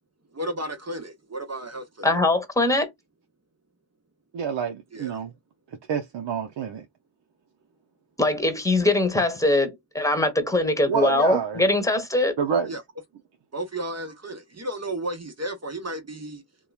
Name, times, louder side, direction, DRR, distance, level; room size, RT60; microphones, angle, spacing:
voice 1, 0.3-2.1 4.9-5.2 12.7-12.8 13.5-16.4, right 1 dB, 35° right, 1.0 m, -33 dB
voice 2, 2.0-2.9 8.2-12.4, left 2 dB, 5° left, 1.2 m, -22 dB
voice 3, 4.3-5.3 5.9-6.9 10.9-11.6 12.4-12.7, right 7 dB, 70° right, 0.6 m, -27 dB
2.9 x 2.2 x 2.3 m
cardioid pair, 40°, 45 cm